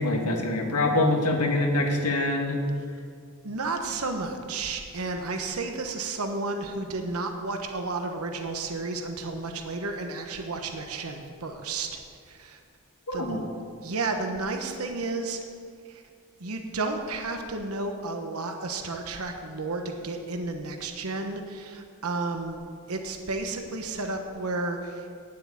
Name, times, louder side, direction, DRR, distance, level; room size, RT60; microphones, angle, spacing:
voice 1, 0.0-2.6 13.1-13.4, left 2 dB, 90° left, 2 dB, 1.7 m, -25 dB
voice 2, 3.4-12.6 13.1-13.4 13.8-15.4 15.9-16.0 16.4-25.2, right 3 dB, 75° right, 4 dB, 1.1 m, -32 dB
9.6 x 7.9 x 8.5 m, 2.3 s
head